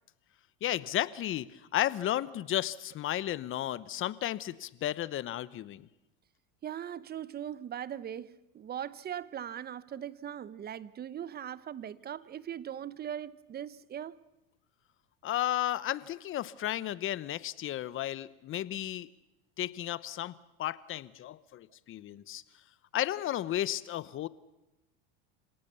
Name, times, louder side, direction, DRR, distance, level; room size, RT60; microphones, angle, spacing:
voice 1, 0.6-5.9 15.2-19.1 19.6-20.3 20.6-22.4 22.9-24.3, left 13 dB, 40° left, 1.0 m, -33 dB
voice 2, 6.6-14.2, right 10 dB, 30° right, 0.9 m, -40 dB
27.0 x 17.5 x 6.9 m
supercardioid pair, 105°, 32 cm